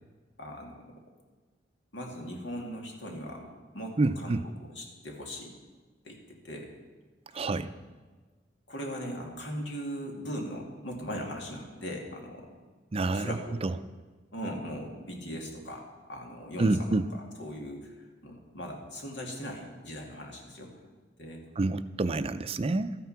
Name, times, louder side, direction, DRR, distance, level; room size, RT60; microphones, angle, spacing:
voice 1, 0.4-0.9 1.9-3.5 3.7-4.4 4.8-5.5 6.0-6.7 7.4-7.6 8.7-12.5 13.1-13.6 14.3-16.9 17.4-17.9 18.2-20.7 21.2-21.4, equal, 85° left, 0 dB, 2.4 m, -39 dB
voice 2, 4.0-4.4 7.3-7.7 12.9-13.8 16.6-17.1 21.6-23.0, right 2 dB, 35° right, 12 dB, 0.4 m, -28 dB
13.0 x 9.5 x 5.7 m, 1.4 s
head